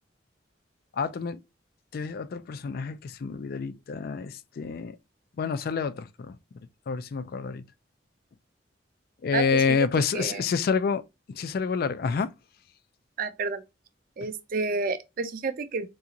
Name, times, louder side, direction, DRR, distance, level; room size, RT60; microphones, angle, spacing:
voice 1, 0.9-1.4 1.9-5.0 5.4-6.4 6.9-7.6 9.2-12.3, left 5 dB, 55° left, 0.3 m, -28 dB
voice 2, 13.2-13.6 14.2-15.9, right 4 dB, 50° right, 0.5 m, -30 dB
3.9 x 2.4 x 2.8 m
head